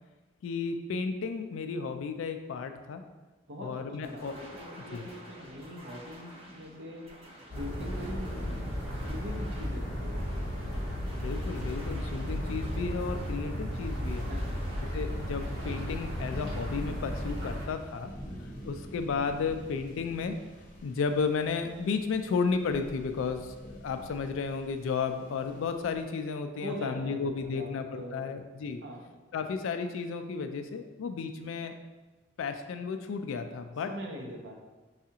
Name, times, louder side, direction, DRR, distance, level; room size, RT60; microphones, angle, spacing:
voice 1, 0.4-3.0 3.6-4.3 4.9-5.1 11.1-14.3 14.9-18.1 18.4-20.4 20.8-28.8 29.3-31.7 32.4-33.9, left 5 dB, 80° left, 7 dB, 0.3 m, -33 dB
voice 2, 3.5-7.1 7.6-8.7 9.0-10.5 14.2-14.7 26.6-28.3 28.8-29.1 33.9-34.6, equal, 65° right, -1 dB, 0.7 m, -42 dB
sound 1, 4.0-17.9, equal, 30° right, 0.7 m, -49 dB
sound 2, 7.5-17.7, equal, 80° right, 1.2 m, -34 dB
sound 3, 9.6-26.0, equal, 40° left, 0.7 m, -48 dB
5.5 x 2.4 x 2.8 m, 1.2 s
head